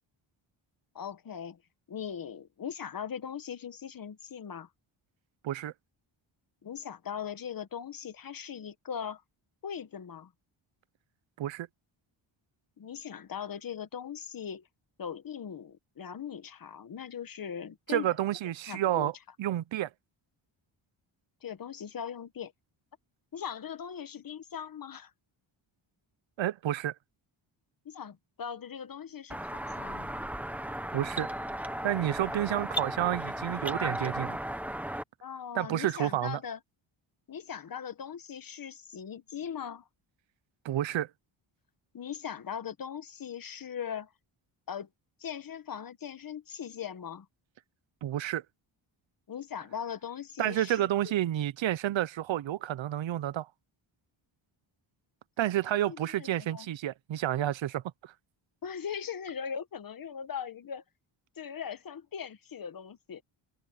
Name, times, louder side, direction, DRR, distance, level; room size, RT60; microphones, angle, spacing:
voice 1, 0.9-1.6 1.9-4.7 6.6-9.2 9.6-10.3 12.8-14.6 15.0-18.2 18.4-19.1 21.4-22.5 23.3-25.1 27.8-30.2 32.3-32.4 35.2-36.6 37.3-39.9 41.9-44.1 44.7-44.9 45.2-47.3 49.3-50.9 55.9-56.7 58.6-60.8 61.4-63.2, left 8 dB, 45° left, 1.3 m, -40 dB
voice 2, 17.9-19.1 19.4-19.9 26.4-26.9 30.9-31.3 31.8-34.4 35.5-36.4 40.6-41.1 48.0-48.4 50.4-53.5 55.4-58.1, right 12 dB, 70° right, 0.8 m, -30 dB
sound 1, 29.3-35.0, right 1 dB, 5° right, 1.0 m, -35 dB
open air
wide cardioid pair, 155°, 48 cm